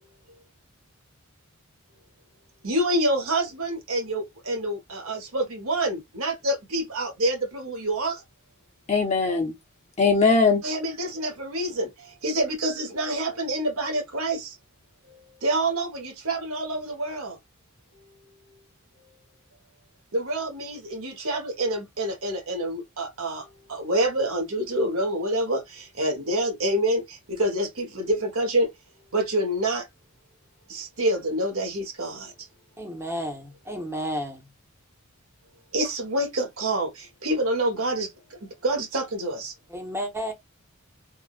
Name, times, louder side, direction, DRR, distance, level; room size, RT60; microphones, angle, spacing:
voice 1, 2.6-8.2 10.6-11.9 12.2-14.5 15.4-17.4 20.1-28.7 29.1-29.8 30.7-32.3 35.7-38.1 38.6-39.5, right 1 dB, 75° right, 1.3 m, -27 dB
voice 2, 8.9-9.5 10.0-10.6, left 4 dB, 30° left, 1.1 m, -20 dB
voice 3, 32.8-34.5 39.7-40.3, equal, 10° right, 1.0 m, -32 dB
3.6 x 2.4 x 2.4 m
head